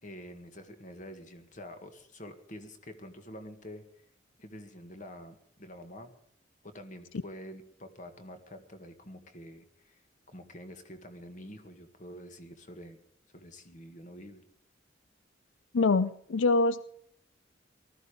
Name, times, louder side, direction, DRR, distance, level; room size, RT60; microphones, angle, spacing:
voice 1, 0.0-4.1 4.4-6.1 6.6-10.0 10.3-13.0 13.3-14.4, equal, 40° left, 7 dB, 1.9 m, -47 dB
voice 2, 15.7-16.8, left 3 dB, 80° left, 15 dB, 0.5 m, -24 dB
19.5 x 14.0 x 5.2 m, 0.64 s
head